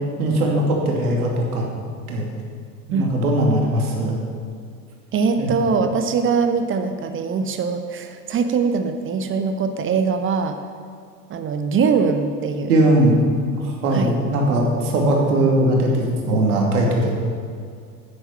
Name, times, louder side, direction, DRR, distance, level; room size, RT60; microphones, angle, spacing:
voice 1, 0.2-1.6 2.1-2.3 2.9-4.2 5.4-5.5 12.7-13.2 13.6-17.1, right 1 dB, 60° right, 0 dB, 2.5 m, -19 dB
voice 2, 5.1-10.6 11.3-12.7 13.9-14.2, right 5 dB, 25° right, 7 dB, 0.8 m, -22 dB
10.0 x 9.7 x 5.9 m, 2.2 s
figure-of-eight pair, 75°, 49 cm